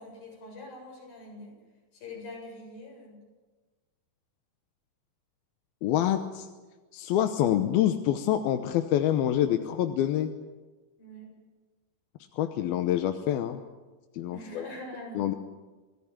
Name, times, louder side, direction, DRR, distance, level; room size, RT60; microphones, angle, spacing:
voice 1, 0.0-1.5 1.9-3.2 11.0-11.4 14.3-15.4, left 1 dB, 70° left, -1 dB, 9.5 m, -44 dB
voice 2, 5.8-6.5 6.9-10.3 12.3-13.6 14.1-14.6 15.2-15.3, left 11 dB, 85° left, 7 dB, 2.8 m, -26 dB
27.0 x 18.0 x 8.9 m, 1.3 s
omnidirectional pair, 4.3 m